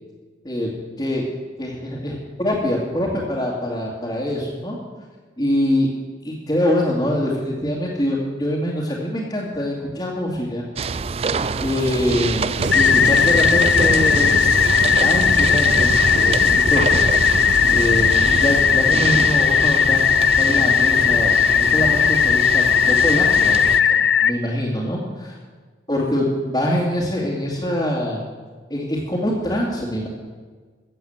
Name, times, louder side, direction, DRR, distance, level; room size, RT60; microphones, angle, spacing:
voice 1, 1.6-4.8 5.4-5.9 6.2-10.6 11.6-14.4 15.0-17.0 17.3-17.4 17.7-25.0 25.9-28.2 28.7-30.1, left 1 dB, 25° left, -5 dB, 2.3 m, -24 dB
sound 1, 10.8-23.8, right 4 dB, 35° right, 0.4 m, -26 dB
sound 2, 12.6-18.7, right 3 dB, 85° right, 0.7 m, -26 dB
sound 3, 12.7-24.3, left 8 dB, 85° left, 0.5 m, -17 dB
15.5 x 7.7 x 7.9 m, 1.5 s
head